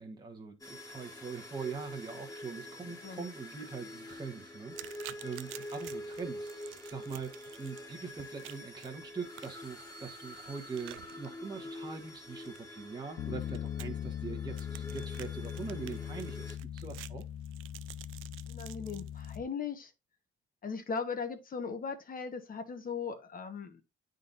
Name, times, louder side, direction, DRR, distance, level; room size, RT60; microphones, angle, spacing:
voice 1, 0.0-17.2, right 5 dB, 20° right, 1.2 m, -43 dB
sound 1, 0.6-16.6, left 1 dB, 20° left, 1.6 m, -46 dB
sound 2, 4.7-19.4, right 15 dB, 80° right, 0.4 m, -52 dB
Bass guitar, 13.2-19.4, left 10 dB, 85° left, 0.9 m, -40 dB
voice 2, 18.5-19.9 20.6-23.8, left 5 dB, 45° left, 1.2 m, -38 dB
9.4 x 3.9 x 2.6 m
cardioid pair, 90°, 20 cm